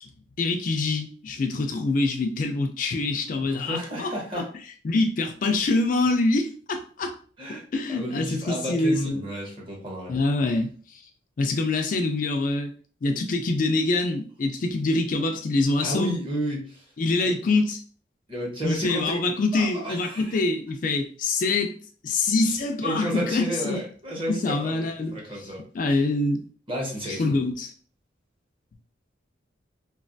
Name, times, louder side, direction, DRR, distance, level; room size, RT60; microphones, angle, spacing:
voice 1, 0.4-4.4 4.8-7.1 7.7-9.3 10.1-11.0 11.4-12.7 13.0-16.1 17.0-17.8 18.6-21.7 22.0-23.8 24.3-25.1 25.7-26.4 27.1-27.7, left 3 dB, 45° left, 4 dB, 0.3 m, -25 dB
voice 2, 3.4-4.5 7.4-7.6 7.9-10.1 15.8-16.8 18.3-19.2 19.5-20.4 22.8-25.6 26.7-27.4, equal, 30° right, -3 dB, 1.0 m, -32 dB
3.2 x 2.3 x 2.5 m, 0.43 s
head